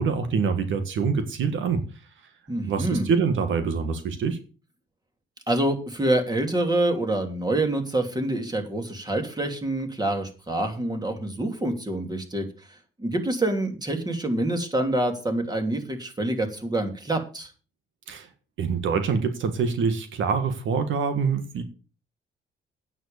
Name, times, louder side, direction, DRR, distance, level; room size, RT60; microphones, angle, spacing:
voice 1, 0.0-1.8 2.6-4.4 18.1-18.3 18.6-21.6, right 5 dB, 75° right, 9 dB, 1.7 m, -25 dB
voice 2, 2.5-3.1 5.5-12.5 13.0-17.5, right 1 dB, 20° right, 5 dB, 3.0 m, -26 dB
9.3 x 7.5 x 6.8 m, 0.35 s
cardioid pair, 90°, 20 cm